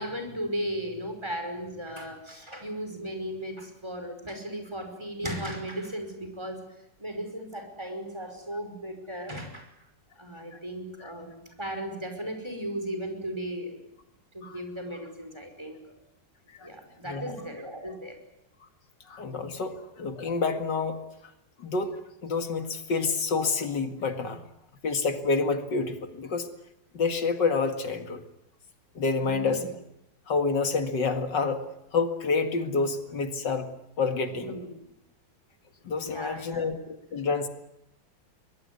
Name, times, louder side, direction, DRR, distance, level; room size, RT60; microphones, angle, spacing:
voice 1, 0.0-6.6 7.0-9.7 10.2-13.8 14.3-15.8 16.6-18.2 19.7-19.8 29.2-29.7 34.3-34.7 36.0-36.8, equal, 15° right, 5 dB, 5.3 m, -36 dB
voice 2, 17.0-17.4 19.1-21.0 21.6-24.4 24.8-26.5 26.9-28.2 28.9-29.6 30.3-31.6 31.9-33.7 34.0-34.6 35.8-37.5, left 4 dB, 70° left, 7 dB, 2.7 m, -28 dB
23.0 x 21.5 x 9.6 m, 0.85 s
omnidirectional pair, 2.0 m